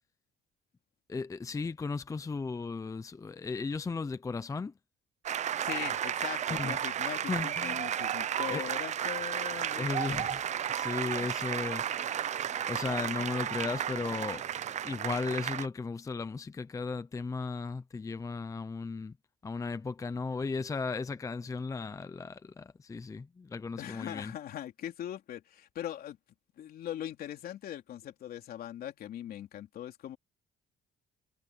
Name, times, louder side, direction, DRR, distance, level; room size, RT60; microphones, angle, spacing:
voice 1, 1.1-4.7 6.6-6.8 7.3-7.9 8.5-8.6 9.8-11.8 12.6-14.4 14.8-19.2 19.4-24.3, left 4 dB, 20° left, 0.7 m, -36 dB
sound 1, 5.2-15.7, right 9 dB, 45° right, 0.6 m, -33 dB
voice 2, 5.6-10.3 11.0-11.3 23.8-26.2 26.6-30.2, left 11 dB, 60° left, 3.2 m, -41 dB
cardioid pair, 110°, 17 cm